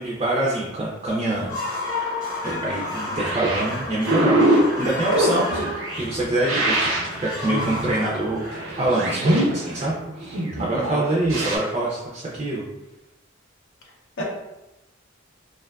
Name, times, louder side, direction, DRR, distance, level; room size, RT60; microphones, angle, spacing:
voice 1, 0.0-1.8 2.4-4.4 4.8-5.7 5.9-6.9 7.2-12.7, right 2 dB, 30° right, -5 dB, 0.3 m, -25 dB
sound 1, 1.3-9.4, left 2 dB, 20° left, 0.6 m, -32 dB
voice 2, 2.8-3.2 5.2-5.5 10.7-11.0 14.2-14.3, equal, 80° left, -1 dB, 0.5 m, -30 dB
sound 2, 3.2-11.6, right 1 dB, 90° right, 0.6 m, -24 dB
2.5 x 2.2 x 2.2 m, 0.96 s
head